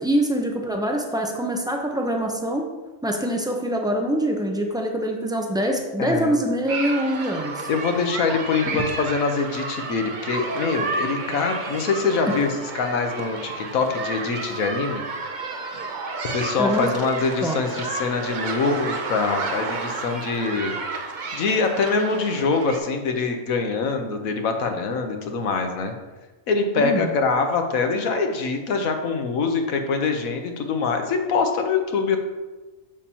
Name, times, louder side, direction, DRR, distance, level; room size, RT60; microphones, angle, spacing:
voice 1, 0.0-2.6 3.0-7.7 8.7-8.8 16.6-16.9 17.4-17.6 26.8-27.1, right 1 dB, 5° right, 1 dB, 0.3 m, -24 dB
voice 2, 6.0-6.3 7.7-15.0 16.3-20.7 21.0-25.9 26.5-32.2, left 4 dB, 85° left, 5 dB, 1.3 m, -24 dB
sound 1, 6.7-22.8, right 3 dB, 45° right, 0.6 m, -31 dB
7.1 x 7.0 x 2.8 m, 1.2 s
omnidirectional pair, 1.4 m